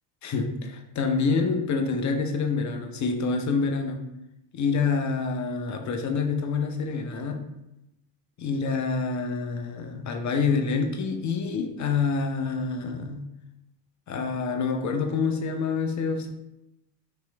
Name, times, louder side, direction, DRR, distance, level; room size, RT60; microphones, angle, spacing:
voice 1, 0.2-4.0 4.5-7.4 8.4-13.2 14.1-16.3, left 4 dB, 35° left, 4 dB, 0.6 m, -27 dB
3.1 x 3.0 x 3.4 m, 0.90 s
supercardioid pair, 70°, 49 cm